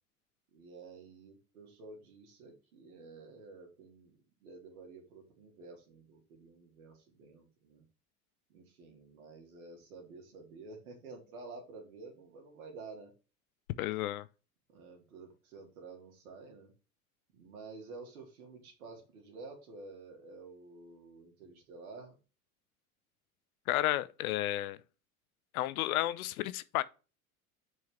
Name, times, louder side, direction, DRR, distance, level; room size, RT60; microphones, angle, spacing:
voice 1, 0.5-4.2 4.4-7.8 8.5-13.1 14.7-16.7 17.3-22.2, right 3 dB, 80° right, 2.6 m, -51 dB
voice 2, 13.8-14.3 23.7-24.8 25.5-26.8, left 15 dB, 75° left, 0.7 m, -32 dB
6.5 x 4.8 x 4.4 m
hypercardioid pair, 75°, 43 cm